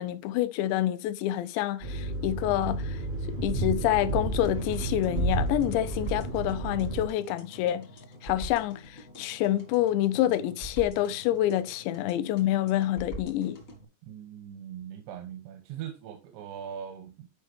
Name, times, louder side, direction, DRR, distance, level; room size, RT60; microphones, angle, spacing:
voice 1, 0.0-3.0 3.4-7.9 8.2-13.6, left 13 dB, 85° left, 2.9 m, -27 dB
sound 1, 1.8-7.1, right 2 dB, 55° right, 0.6 m, -31 dB
sound 2, 4.4-13.8, right 1 dB, 50° left, 0.9 m, -45 dB
voice 2, 14.0-17.3, right 9 dB, 90° right, 3.2 m, -41 dB
10.5 x 5.1 x 3.4 m
omnidirectional pair, 5.0 m